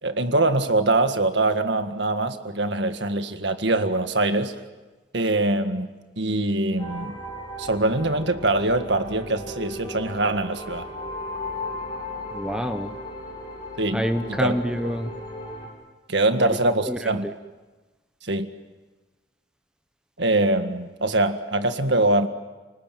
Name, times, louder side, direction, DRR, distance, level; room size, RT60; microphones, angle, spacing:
voice 1, 0.0-4.5 5.1-5.9 6.2-7.2 7.6-10.9 13.8-14.1 14.4-14.5 16.1-17.3 18.2-18.5 20.2-22.3, right 2 dB, 65° right, 8 dB, 1.8 m, -23 dB
sound 1, 6.8-15.7, left 1 dB, 25° left, 6.9 m, -36 dB
voice 2, 12.3-12.9 13.9-15.1 16.4-16.6 16.8-17.3, equal, 5° right, 7 dB, 1.0 m, -27 dB
29.5 x 20.0 x 9.3 m, 1.2 s
head